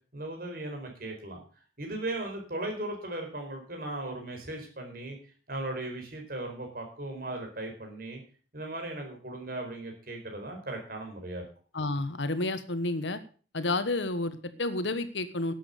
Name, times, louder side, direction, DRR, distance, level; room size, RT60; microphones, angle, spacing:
voice 1, 0.1-1.4 1.8-5.2 5.5-8.2 8.5-11.4, right 2 dB, 50° right, 2 dB, 4.7 m, -37 dB
voice 2, 11.7-13.2 13.5-15.5, left 2 dB, 80° left, 11 dB, 1.3 m, -30 dB
12.0 x 8.6 x 6.7 m, 0.40 s
head